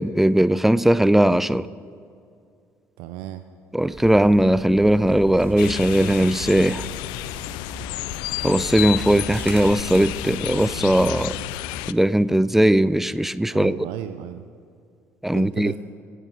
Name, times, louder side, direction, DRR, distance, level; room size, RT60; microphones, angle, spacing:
voice 1, 0.0-1.7 3.7-6.8 8.4-11.4 11.9-13.8 15.2-15.7, right 1 dB, 5° right, 0.5 m, -19 dB
voice 2, 3.0-3.4 13.5-14.4 15.3-15.8, right 13 dB, 65° right, 0.6 m, -34 dB
sound 1, 3.9-11.1, right 2 dB, 30° right, 3.1 m, -38 dB
sound 2, 5.6-11.9, left 17 dB, 65° left, 0.4 m, -31 dB
26.5 x 9.5 x 3.9 m
figure-of-eight pair, 55°, 8 cm